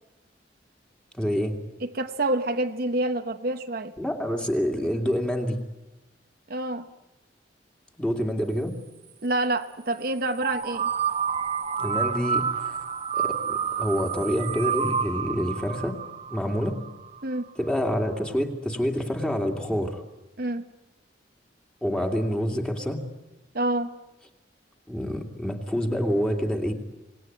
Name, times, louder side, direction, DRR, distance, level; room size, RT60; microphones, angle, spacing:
voice 1, 1.1-1.6 4.0-5.6 8.0-8.8 11.8-12.8 13.1-16.0 16.3-16.7 17.6-20.0 21.8-23.0 24.9-26.7, equal, 5° left, 2.5 m, -27 dB
voice 2, 1.8-3.9 6.5-6.9 9.2-10.9 17.2-17.5 20.4-20.7 23.5-24.0, right 2 dB, 55° right, 1.0 m, -27 dB
sound 1, 10.4-17.2, right 7 dB, 35° right, 1.0 m, -29 dB
26.5 x 19.0 x 9.5 m
head